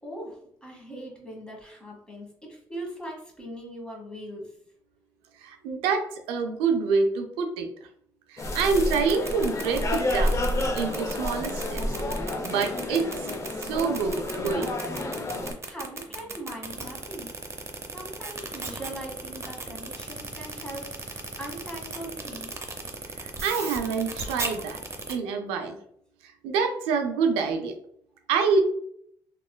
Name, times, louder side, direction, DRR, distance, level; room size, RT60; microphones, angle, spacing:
voice 1, 0.0-4.5 15.3-17.3 17.9-22.7, right 1 dB, 10° left, -1 dB, 1.3 m, -40 dB
voice 2, 5.4-7.7 8.3-11.8 12.4-13.1 13.6-14.7 23.4-24.8 25.1-25.8 26.4-27.7 28.3-28.6, right 5 dB, 90° right, 5 dB, 0.4 m, -26 dB
sound 1, 8.4-15.5, left 1 dB, 35° left, 0.6 m, -29 dB
sound 2, 8.5-25.1, right 3 dB, 30° right, 0.6 m, -36 dB
3.1 x 2.9 x 2.2 m, 0.66 s
supercardioid pair, 65°, 9 cm